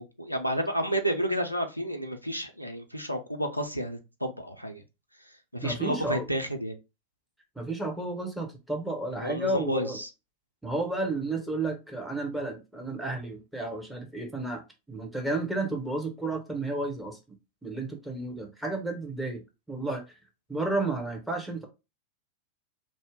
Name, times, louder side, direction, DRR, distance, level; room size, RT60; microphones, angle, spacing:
voice 1, 0.0-4.8 5.5-6.8 9.2-10.1, equal, 90° left, 0.4 m, -31 dB
voice 2, 5.6-6.3 7.6-10.0 10.6-14.6 14.9-17.4 17.6-19.4 19.7-20.0 20.5-21.6, right 2 dB, ahead, 0.9 m, -32 dB
2.6 x 2.1 x 3.5 m
figure-of-eight pair, 90°, 0 cm